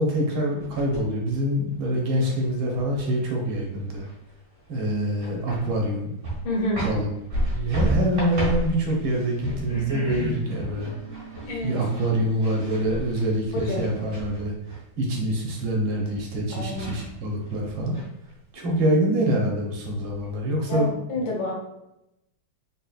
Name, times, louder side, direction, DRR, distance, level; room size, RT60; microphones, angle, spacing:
voice 1, 0.0-4.0 4.7-6.1 6.8-7.1 7.5-10.9 11.6-18.0 18.5-20.9, right 1 dB, 85° right, -1 dB, 1.8 m, -25 dB
sound 1, 0.6-1.3 1.7-4.3 4.6-4.7 5.1-6.0 6.2-14.8 16.3-16.4 16.7-17.5 17.9-18.6, right 1 dB, 50° right, 2.1 m, -32 dB
voice 2, 6.4-6.9 11.5-11.8 13.5-13.9 16.5-16.9 20.7-21.5, left 1 dB, 80° left, -2 dB, 1.9 m, -28 dB
4.3 x 3.7 x 2.4 m, 0.86 s
omnidirectional pair, 2.2 m